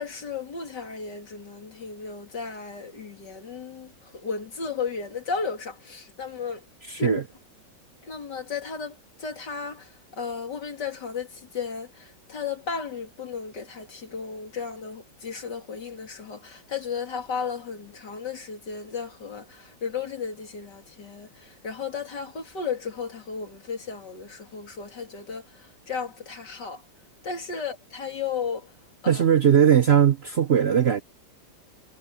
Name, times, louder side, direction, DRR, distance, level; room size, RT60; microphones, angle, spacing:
voice 1, 0.0-6.7 7.0-7.2 8.0-26.8 27.2-28.7 29.0-29.2, left 5 dB, 65° left, 3.6 m, -34 dB
voice 2, 6.9-7.2 29.1-31.0, right 9 dB, 55° right, 0.7 m, -19 dB
omnidirectional pair, 2.0 m